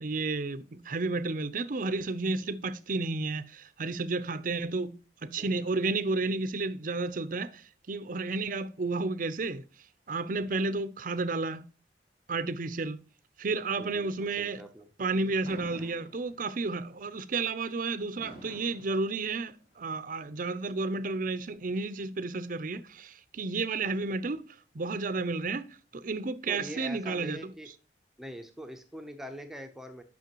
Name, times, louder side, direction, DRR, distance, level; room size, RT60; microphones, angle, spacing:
voice 1, 0.0-9.6 10.1-11.6 12.3-13.0 13.4-14.6 15.0-24.5 24.7-25.6 25.9-27.5, right 3 dB, 50° right, 0.6 m, -32 dB
voice 2, 5.4-5.7 13.8-14.9 26.5-27.7 28.2-30.0, equal, ahead, 0.7 m, -43 dB
Fireworks, 15.4-16.7 18.2-19.7, equal, 90° left, 3.2 m, -49 dB
9.3 x 5.6 x 3.0 m
head